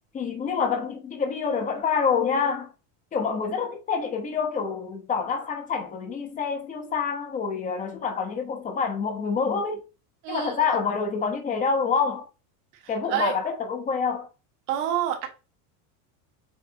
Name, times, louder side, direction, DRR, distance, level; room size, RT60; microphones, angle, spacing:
voice 1, 0.1-2.7 3.1-9.8 10.3-12.2 12.9-14.3, left 5 dB, 15° left, 0.9 m, -27 dB
voice 2, 10.2-10.6 12.8-13.4 14.7-15.3, right 10 dB, 55° right, 1.5 m, -28 dB
7.1 x 2.5 x 2.8 m
supercardioid pair, 165°, 45 cm